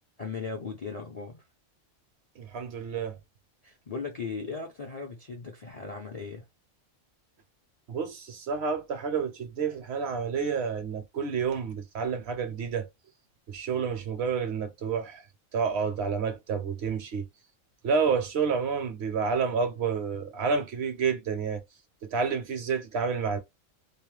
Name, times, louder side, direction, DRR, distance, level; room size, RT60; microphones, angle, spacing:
voice 1, 0.2-1.4 3.6-6.5, left 4 dB, 45° left, 0.5 m, -37 dB
voice 2, 2.4-3.2 7.9-12.9 13.5-15.3 15.5-17.3 17.8-21.6 22.1-23.4, right 5 dB, 65° right, 0.8 m, -29 dB
2.3 x 2.1 x 3.0 m
omnidirectional pair, 1.3 m